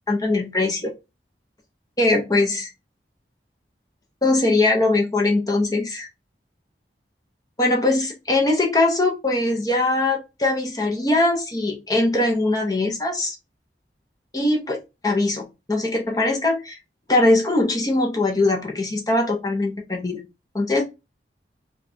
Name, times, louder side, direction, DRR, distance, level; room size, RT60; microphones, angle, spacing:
voice 1, 0.1-0.9 2.0-2.7 4.2-6.1 7.6-13.4 14.3-14.8 15.0-16.8 17.1-20.2 20.5-20.8, left 2 dB, 20° left, 1 dB, 0.8 m, -21 dB
4.5 x 2.3 x 2.7 m, 0.24 s
head